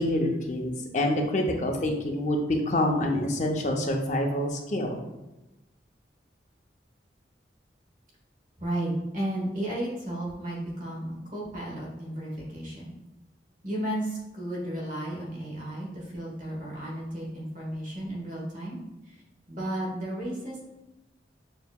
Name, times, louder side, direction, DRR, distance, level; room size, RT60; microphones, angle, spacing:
voice 1, 0.0-5.0, left 1 dB, 40° left, 1 dB, 0.5 m, -27 dB
voice 2, 8.6-12.9 13.6-18.8 19.0-19.2 19.5-20.6, right 1 dB, 45° right, -4 dB, 1.1 m, -33 dB
6.4 x 2.8 x 2.3 m, 0.98 s
head